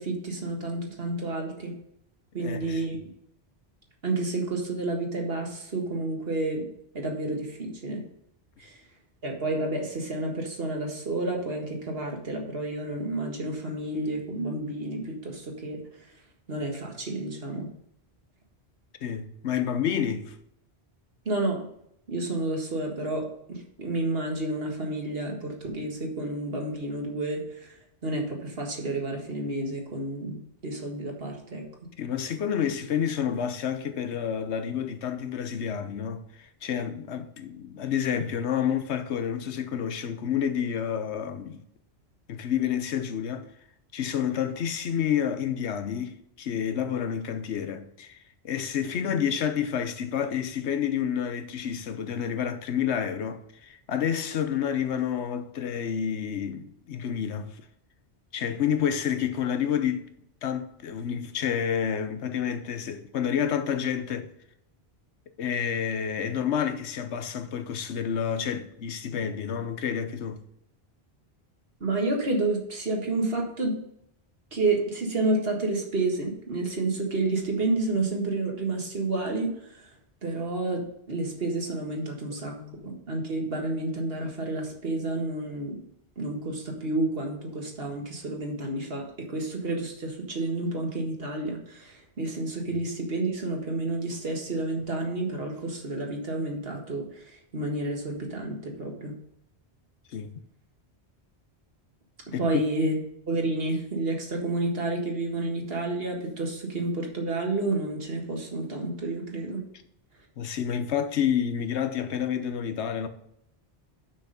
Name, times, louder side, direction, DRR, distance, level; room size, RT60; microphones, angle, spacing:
voice 1, 0.0-1.8 2.3-3.0 4.0-6.7 6.9-8.0 8.6-8.8 9.2-15.8 16.5-17.7 21.3-21.7 22.1-27.8 28.0-31.6 71.8-73.8 74.5-79.9 80.2-82.6 82.8-85.8 86.2-99.2 102.4-102.9 103.3-109.6, right 2 dB, 65° right, 1.9 m, -30 dB
voice 2, 2.4-2.8 19.0-20.3 32.0-41.6 42.3-43.4 43.9-48.2 48.4-57.6 58.3-60.1 60.4-64.3 65.4-70.4 82.6-82.9 100.1-100.3 102.3-102.6 110.4-113.1, left 8 dB, 90° left, 1.1 m, -29 dB
6.4 x 6.0 x 6.7 m
omnidirectional pair, 1.1 m